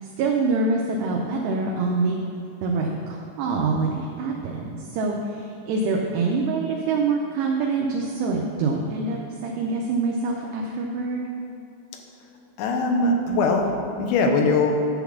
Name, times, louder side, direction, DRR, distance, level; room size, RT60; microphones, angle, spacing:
voice 1, 0.2-2.2 2.6-11.2, right 3 dB, 80° right, 0 dB, 2.5 m, -25 dB
voice 2, 12.6-14.7, left 3 dB, 85° left, 3 dB, 3.1 m, -21 dB
11.0 x 4.0 x 7.0 m, 2.8 s
omnidirectional pair, 5.3 m